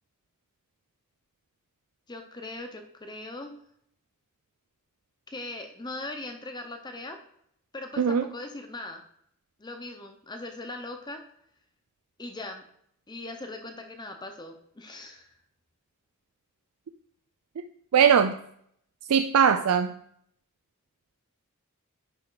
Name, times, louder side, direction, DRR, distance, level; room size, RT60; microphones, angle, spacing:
voice 1, 2.1-3.6 5.3-7.2 7.7-9.0 9.6-11.2 12.2-12.6 13.1-15.3, left 2 dB, 20° left, 5 dB, 0.6 m, -39 dB
voice 2, 17.9-18.3 19.1-19.9, right 7 dB, 80° right, 8 dB, 0.4 m, -20 dB
9.9 x 3.5 x 3.8 m, 0.69 s
head